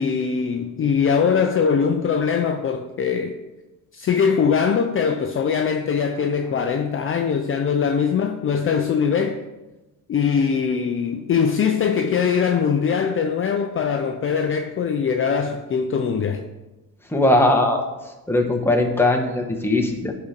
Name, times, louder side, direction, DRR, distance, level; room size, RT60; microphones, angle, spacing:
voice 1, 0.0-3.4 3.9-9.4 10.1-16.4, left 6 dB, 40° left, 0.5 m, -21 dB
voice 2, 17.1-17.8 18.3-20.1, left 1 dB, 5° left, 1.1 m, -19 dB
9.3 x 4.3 x 5.1 m
cardioid pair, 120°, 33 cm